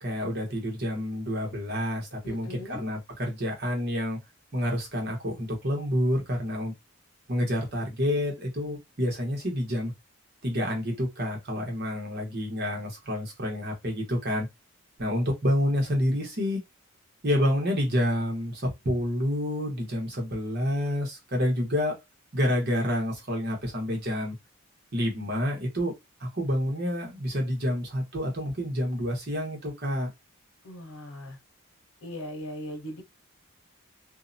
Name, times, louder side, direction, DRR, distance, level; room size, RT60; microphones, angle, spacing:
voice 1, 0.0-4.2 4.5-6.7 7.3-9.9 10.4-14.5 15.0-16.6 17.2-22.0 22.3-24.4 24.9-25.9 26.2-30.1, equal, 45° right, 1.0 m, -28 dB
voice 2, 2.2-2.8 30.6-31.4 32.0-33.0, equal, 85° left, 0.9 m, -39 dB
2.7 x 2.0 x 2.6 m
head